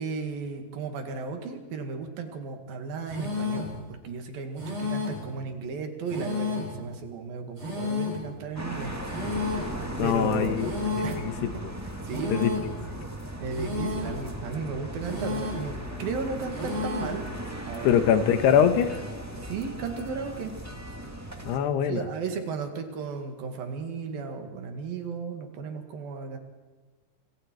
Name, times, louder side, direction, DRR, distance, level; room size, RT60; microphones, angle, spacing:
voice 1, 0.0-3.7 4.0-9.0 9.3-9.7 10.0-10.6 11.0-11.4 12.0-12.5 13.4-15.7 16.0-17.3 17.7-18.0 19.4-20.5 21.9-26.4, right 4 dB, 65° right, 5 dB, 3.8 m, -35 dB
sound 1, 3.1-3.8 4.6-5.3 6.1-6.8 7.6-8.3 9.1-9.8 10.6-11.3 12.1-12.8 13.5-14.2 15.0-15.7 16.5-17.2, left 3 dB, 40° right, 8.1 m, -31 dB
sound 2, 8.5-21.6, right 1 dB, 10° right, 1.0 m, -37 dB
voice 2, 10.0-10.7 11.2-11.5 12.3-12.5 17.8-19.0 21.5-22.1, left 8 dB, 90° left, 9 dB, 3.3 m, -22 dB
28.0 x 26.5 x 4.6 m, 1.3 s
omnidirectional pair, 4.7 m